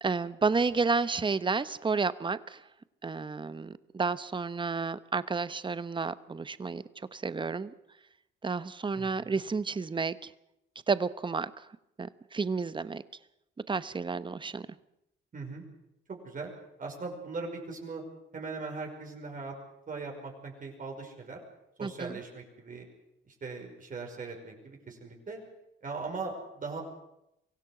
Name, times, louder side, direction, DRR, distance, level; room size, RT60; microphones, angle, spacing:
voice 1, 0.0-2.6 3.0-6.8 7.1-7.7 8.4-10.3 10.9-11.7 12.0-13.0 13.7-14.7 21.8-22.2, right 4 dB, 25° right, 15 dB, 1.0 m, -31 dB
voice 2, 8.9-9.3 15.3-15.6 16.1-16.5 16.8-18.0 18.3-19.5 19.9-21.4 21.8-22.8 23.3-25.4 25.8-26.8, right 4 dB, 40° right, 1 dB, 5.5 m, -39 dB
24.0 x 16.0 x 7.9 m, 0.85 s
cardioid pair, 90°, 20 cm